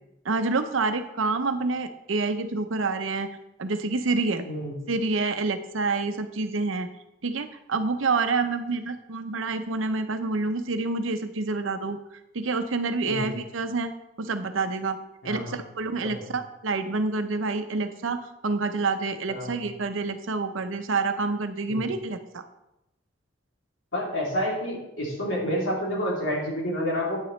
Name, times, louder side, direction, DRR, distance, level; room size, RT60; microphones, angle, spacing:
voice 1, 0.2-3.3 3.6-4.4 4.9-6.9 7.2-13.9 14.2-15.0 15.2-22.4, right 3 dB, 85° right, 8 dB, 0.7 m, -28 dB
voice 2, 15.2-15.5 16.0-16.3 19.3-19.6 21.7-21.9 23.9-27.2, equal, 85° left, -4 dB, 2.9 m, -29 dB
9.1 x 8.6 x 3.2 m, 0.90 s
head